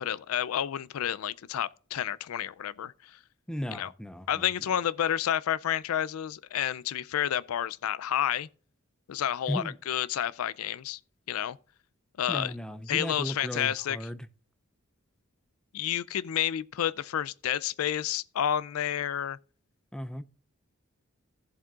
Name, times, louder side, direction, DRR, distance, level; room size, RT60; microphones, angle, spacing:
voice 1, 0.0-3.2 3.7-3.9 4.3-8.5 9.1-11.0 11.3-11.6 12.2-12.5 12.9-14.0 15.7-19.4, left 10 dB, 85° left, 0.4 m, -30 dB
voice 2, 3.5-4.5 9.5-9.8 12.3-14.3 19.9-20.2, equal, 5° left, 0.4 m, -35 dB
15.5 x 7.4 x 2.4 m
head